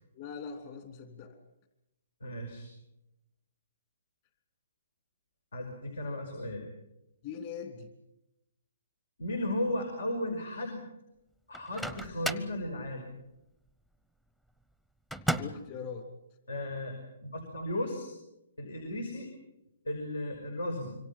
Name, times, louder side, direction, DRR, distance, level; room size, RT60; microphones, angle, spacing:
voice 1, 0.1-1.3 7.2-7.9 15.4-16.1, left 6 dB, 40° left, 5 dB, 3.3 m, -41 dB
voice 2, 2.2-2.7 5.5-6.7 9.2-10.8 11.5-13.0 15.3-15.5 16.5-17.0 17.2-18.1 18.6-19.3 19.8-20.9, left 1 dB, 90° left, 4 dB, 5.5 m, -35 dB
Microwave oven, 11.5-12.6 15.1-15.7, right 1 dB, 5° left, 0.7 m, -34 dB
26.0 x 24.0 x 5.8 m, 0.87 s
hypercardioid pair, 150°, 0 cm